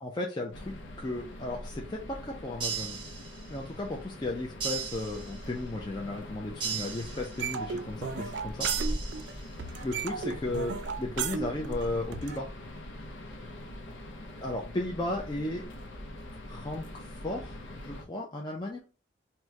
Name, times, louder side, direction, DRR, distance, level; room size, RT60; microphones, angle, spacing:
voice 1, 0.0-3.0 3.5-8.7 9.8-12.5 14.4-15.6 16.5-18.8, left 2 dB, 20° left, -1 dB, 0.4 m, -35 dB
sound 1, 0.5-18.0, left 1 dB, 80° left, 0.6 m, -42 dB
sound 2, 2.6-3.7 4.6-5.7 6.6-7.7 8.6-9.6, right 7 dB, 25° right, 0.6 m, -37 dB
sound 3, 7.4-9.3 9.6-12.4, right 6 dB, 65° right, 0.4 m, -35 dB
2.9 x 2.1 x 3.5 m, 0.34 s
head